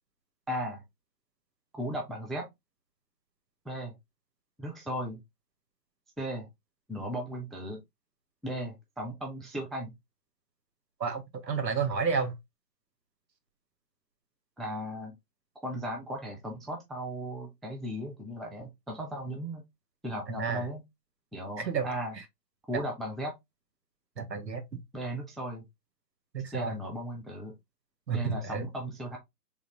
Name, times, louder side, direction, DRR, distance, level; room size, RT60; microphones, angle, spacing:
voice 1, 0.5-0.8 1.7-2.5 3.7-4.0 4.6-5.2 6.2-6.5 6.9-7.8 8.4-9.9 14.6-15.1 15.6-19.6 20.0-20.8 21.3-22.2 22.7-23.3 24.9-25.6 26.5-27.6 28.1-29.2, right 1 dB, ahead, 0.4 m, -36 dB
voice 2, 11.0-12.3 20.3-20.7 21.6-21.9 24.2-24.6 26.3-26.8 28.1-28.7, right 5 dB, 85° right, 1.2 m, -31 dB
3.7 x 2.4 x 2.9 m
hypercardioid pair, 180°, 49 cm